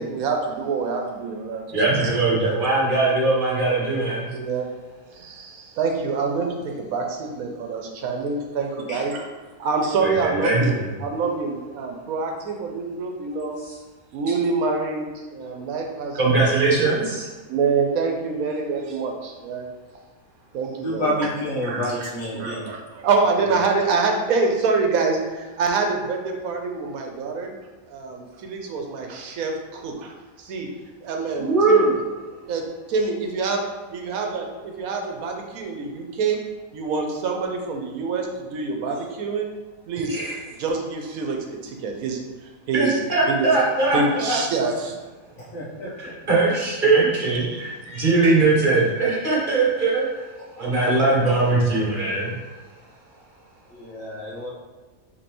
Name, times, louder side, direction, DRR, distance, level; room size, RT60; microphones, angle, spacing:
voice 1, 0.0-1.6 2.0-2.2 4.3-4.7 5.1-9.3 9.6-13.6 14.1-17.1 17.5-19.7 20.5-21.3 21.6-27.5 27.9-30.7 31.0-31.9 32.4-33.6 33.9-36.4 36.7-39.5 39.9-40.2 40.6-43.0 43.3-43.5 43.9-45.0 47.5-47.6, right 4 dB, 80° right, 3 dB, 1.1 m, -26 dB
voice 2, 1.7-4.3 10.0-10.9 13.6-13.7 16.1-17.3 31.3-31.9 40.1-40.4 42.7-44.4 46.0-50.3 50.6-52.3, right 3 dB, 40° right, -5 dB, 1.0 m, -21 dB
voice 3, 20.8-22.8 23.4-23.5 45.4-46.1 47.8-48.2 50.6-51.1 53.7-54.5, left 1 dB, 65° left, -5 dB, 1.5 m, -30 dB
5.2 x 3.4 x 3.0 m, 1.3 s
omnidirectional pair, 1.5 m